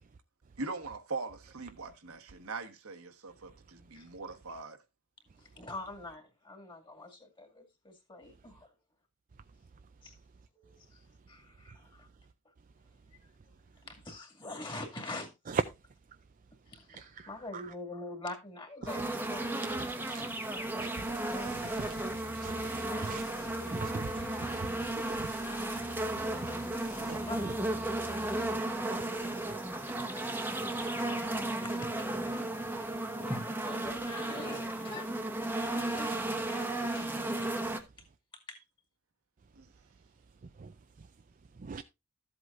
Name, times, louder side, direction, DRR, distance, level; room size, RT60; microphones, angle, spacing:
voice 1, 0.6-4.8 39.6-39.7, right 3 dB, 75° right, 1.4 m, -41 dB
voice 2, 5.4-8.7 10.0-10.2 10.5-12.1 13.9-15.3 16.7-20.6 21.0-21.9 22.9-24.2 26.8-27.7 29.8-30.0 31.3-35.1 35.6-37.1 38.3-38.6, left 2 dB, 20° left, 2.2 m, -46 dB
sound 1, 18.9-37.8, right 1 dB, 10° right, 1.0 m, -34 dB
sound 2, 21.1-28.5, left 3 dB, 75° left, 1.7 m, -49 dB
voice 3, 22.3-22.8 23.1-23.2 23.7-24.0 24.5-24.7 25.1-25.2 27.1-27.2 41.7-41.8, right 4 dB, 35° right, 0.4 m, -41 dB
13.0 x 7.9 x 2.5 m
head